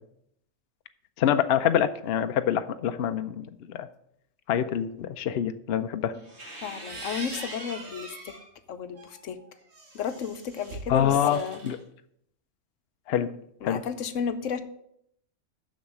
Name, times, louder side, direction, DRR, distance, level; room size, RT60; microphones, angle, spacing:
voice 1, 1.2-3.9 4.5-6.1 10.9-11.8 13.1-13.3 13.6-13.8, left 9 dB, 60° left, 9 dB, 0.8 m, -26 dB
sound 1, 6.1-8.5 9.0-11.8, right 2 dB, 60° right, 2.1 m, -42 dB
voice 2, 6.6-8.3 8.7-9.4 9.9-11.6 13.2-13.3 13.6-14.6, left 7 dB, 80° left, 10 dB, 1.1 m, -33 dB
7.0 x 6.4 x 7.4 m, 0.73 s
omnidirectional pair, 1.3 m